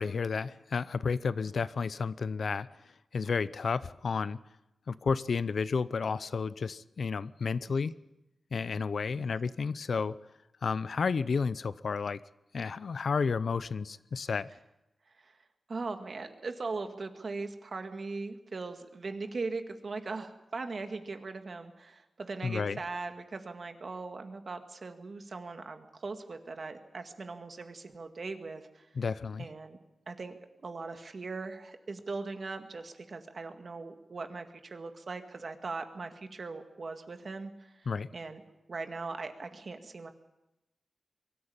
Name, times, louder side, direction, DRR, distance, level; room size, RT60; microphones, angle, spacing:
voice 1, 0.0-2.7 3.1-4.4 4.9-7.9 8.5-10.2 10.6-12.2 12.5-14.5 22.4-22.8 29.0-29.5 37.9-38.1, left 5 dB, 65° left, 16 dB, 0.6 m, -31 dB
voice 2, 15.7-28.9 29.4-29.8 30.1-38.4 38.7-40.1, right 3 dB, 50° right, 7 dB, 2.0 m, -40 dB
23.0 x 14.0 x 8.8 m, 0.96 s
wide cardioid pair, 115°, 0 cm